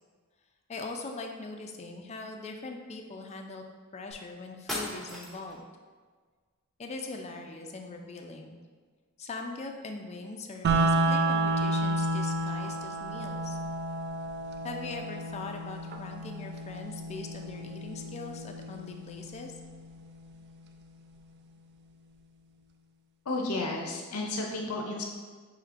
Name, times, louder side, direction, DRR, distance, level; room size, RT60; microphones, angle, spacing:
voice 1, 0.7-3.6 3.9-5.7 6.8-8.6 9.2-13.6 14.6-19.5, left 3 dB, 30° left, 3 dB, 0.4 m, -41 dB
sound 1, 4.1-4.2 4.7-5.6, left 1 dB, ahead, 0.7 m, -37 dB
sound 2, 10.6-20.6, right 2 dB, 50° right, 0.3 m, -31 dB
voice 2, 23.3-25.0, left 2 dB, 80° left, 0 dB, 0.6 m, -32 dB
5.9 x 3.1 x 2.5 m, 1.5 s
head